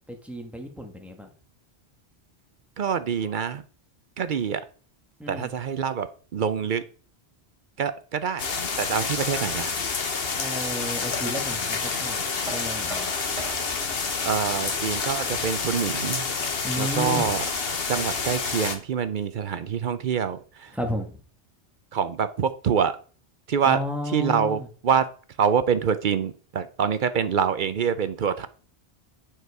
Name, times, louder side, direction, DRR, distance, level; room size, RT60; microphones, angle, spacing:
voice 1, 0.1-1.3 5.2-5.5 10.4-12.2 12.5-13.1 16.6-17.3 20.7-21.2 23.6-24.7, equal, ahead, 3 dB, 1.4 m, -32 dB
voice 2, 2.8-3.6 4.2-4.6 5.3-6.8 7.8-8.5 8.8-9.7 14.2-16.2 16.8-17.4 17.9-20.7 21.9-23.0 23.5-23.8 24.1-25.1 25.4-28.5, right 7 dB, 55° right, 13 dB, 0.7 m, -25 dB
sound 1, 8.4-18.8, left 5 dB, 65° left, 1.3 m, -28 dB
Knock, 12.5-18.3, right 1 dB, 30° right, 1.3 m, -44 dB
9.4 x 4.8 x 4.7 m, 0.40 s
omnidirectional pair, 1.1 m